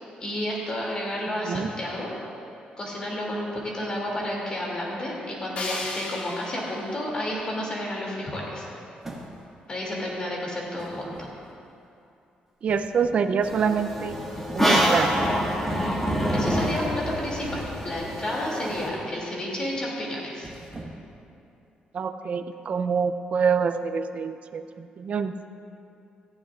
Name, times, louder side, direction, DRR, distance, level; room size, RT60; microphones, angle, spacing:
voice 1, 0.2-2.1 2.8-8.7 9.7-11.3 15.7-16.0 16.3-20.5, left 1 dB, 30° left, -3 dB, 2.7 m, -31 dB
sound 1, 5.6-8.5, left 2 dB, 50° left, 2.0 m, -38 dB
sound 2, 9.0-9.7 10.8-11.7 12.7-13.3 14.0-14.8 15.1-15.4 16.2-16.9 17.4-17.9 18.7-19.1 19.5-19.8 20.3-21.2, right 2 dB, 15° right, 1.6 m, -43 dB
voice 2, 12.6-14.1 14.5-15.1 21.9-25.3, right 6 dB, 50° right, 9 dB, 0.6 m, -26 dB
sound 3, 13.4-18.9, equal, 10° left, 2.1 m, -26 dB
17.5 x 15.0 x 2.5 m, 2.6 s
cardioid pair, 135°, 3 cm